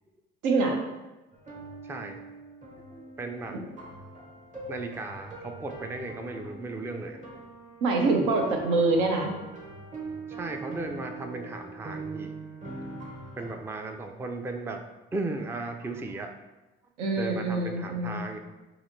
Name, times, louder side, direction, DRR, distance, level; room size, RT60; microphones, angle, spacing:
voice 1, 0.4-0.8 7.8-9.3 17.0-18.2, right 3 dB, 75° right, 2 dB, 0.7 m, -25 dB
sound 1, 1.3-13.6, right 3 dB, 25° right, 0.9 m, -42 dB
voice 2, 1.8-2.2 2.9-3.8 4.7-7.2 10.3-12.4 13.4-14.8 15.1-16.3 17.2-18.4, right 2 dB, 10° right, 5 dB, 0.4 m, -36 dB
4.2 x 2.8 x 2.6 m, 1.1 s
hypercardioid pair, 55°, 29 cm